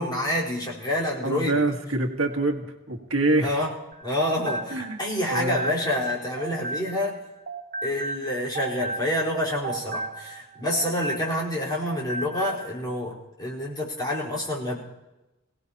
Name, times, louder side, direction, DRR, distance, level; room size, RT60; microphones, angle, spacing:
voice 1, 0.0-1.6 3.4-3.7 4.0-7.2 7.8-14.8, left 1 dB, 20° left, -6 dB, 4.3 m, -28 dB
voice 2, 1.2-3.6 4.7-5.0 5.3-5.6, right 2 dB, 75° right, 2 dB, 1.6 m, -25 dB
sound 1, 3.9-7.2 7.5-11.5 11.8-12.6, right 3 dB, 45° right, 1.2 m, -34 dB
26.5 x 17.5 x 2.9 m, 0.99 s
head